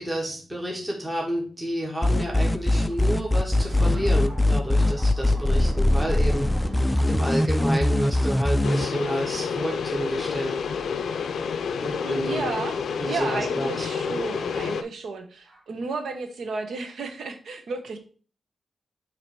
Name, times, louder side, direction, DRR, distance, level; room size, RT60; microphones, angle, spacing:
voice 1, 0.0-6.7 7.0-10.6 11.8-12.5 13.0-13.9, equal, 10° right, -1 dB, 1.2 m, -30 dB
sound 1, 2.0-8.9, left 1 dB, 10° left, 0.3 m, -21 dB
Thunder, 2.7-12.7 13.4-13.5 14.5-14.7 15.4-15.6, right 1 dB, 25° right, 2.7 m, -42 dB
sound 2, 8.6-14.8, left 6 dB, 80° left, 0.5 m, -29 dB
voice 2, 12.0-12.8 13.1-18.0, right 4 dB, 65° right, 5 dB, 1.0 m, -33 dB
7.1 x 3.0 x 4.6 m, 0.40 s
wide cardioid pair, 170°, 0 cm